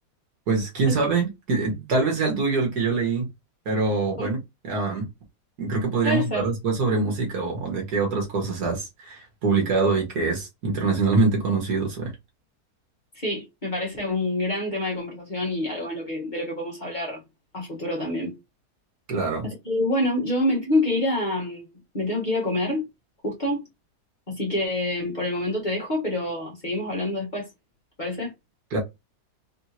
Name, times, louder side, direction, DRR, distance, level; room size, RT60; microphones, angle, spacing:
voice 1, 0.5-3.3 3.7-4.4 4.6-5.1 5.6-12.1 19.1-19.5 28.7-28.8, right 3 dB, 70° right, 1.9 m, -24 dB
voice 2, 6.0-6.5 13.1-17.2 17.5-18.3 19.4-22.8 23.2-23.6 24.3-27.5 28.0-28.3, left 1 dB, 30° left, 1.4 m, -27 dB
3.9 x 3.6 x 2.8 m
omnidirectional pair, 1.8 m